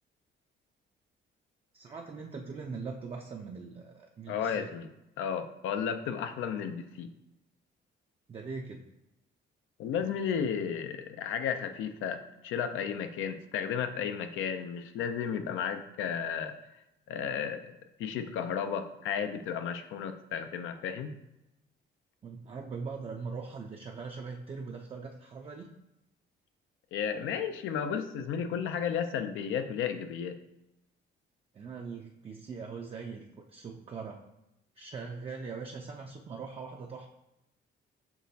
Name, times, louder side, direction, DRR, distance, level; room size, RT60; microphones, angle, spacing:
voice 1, 1.7-4.7 8.3-8.9 22.2-25.7 31.5-34.2 34.8-37.1, right 5 dB, 30° right, 1 dB, 0.4 m, -41 dB
voice 2, 4.3-4.9 5.2-7.1 9.8-16.5 17.1-17.7 18.0-21.2 26.9-30.4, left 7 dB, 85° left, 8 dB, 0.5 m, -33 dB
6.0 x 3.0 x 2.7 m, 0.89 s
cardioid pair, 90°, 20 cm